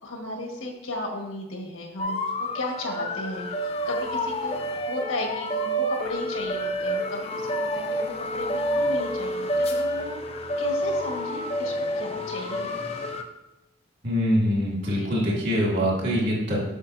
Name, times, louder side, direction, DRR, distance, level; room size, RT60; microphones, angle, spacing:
voice 1, 0.0-4.6 4.8-10.2 10.6-12.7 14.9-15.1, left 1 dB, 85° left, 0 dB, 1.5 m, -35 dB
sound 1, 2.0-13.2, equal, 30° left, 0.5 m, -28 dB
voice 2, 14.0-16.6, equal, 55° right, -3 dB, 2.2 m, -24 dB
8.1 x 6.7 x 2.6 m, 0.91 s
head